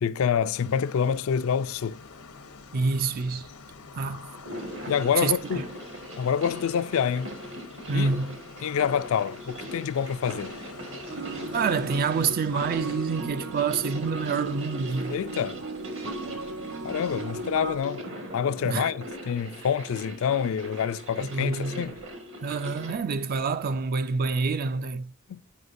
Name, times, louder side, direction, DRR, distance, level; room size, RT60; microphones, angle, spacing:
voice 1, 0.0-2.0 4.9-5.6 6.2-7.3 7.9-8.1 8.6-10.5 15.1-15.6 16.8-18.0 18.3-22.0 25.3-25.5, left 7 dB, 65° left, 0.3 m, -27 dB
sound 1, 0.5-13.1, left 4 dB, 80° left, 0.8 m, -46 dB
voice 2, 2.7-3.5 3.9-4.3 5.2-5.6 7.9-8.4 11.5-15.2 18.6-18.9 21.2-21.8 22.4-25.1, right 4 dB, 45° right, 0.4 m, -27 dB
sound 2, 4.3-23.0, equal, 60° right, 1.7 m, -40 dB
sound 3, 11.1-17.8, right 3 dB, 85° right, 0.7 m, -37 dB
9.4 x 5.6 x 2.5 m
head